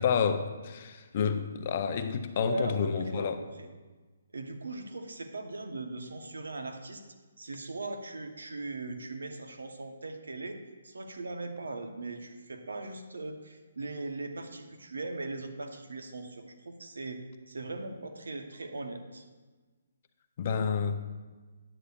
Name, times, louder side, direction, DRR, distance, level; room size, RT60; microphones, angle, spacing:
voice 1, 0.0-3.4 20.4-21.0, left 6 dB, 45° left, 8 dB, 0.5 m, -29 dB
voice 2, 2.4-3.7 4.3-7.0 7.4-10.6 10.8-19.3, right 2 dB, 80° right, 6 dB, 0.8 m, -39 dB
9.8 x 8.0 x 2.3 m, 1.3 s
figure-of-eight pair, 145°, 0 cm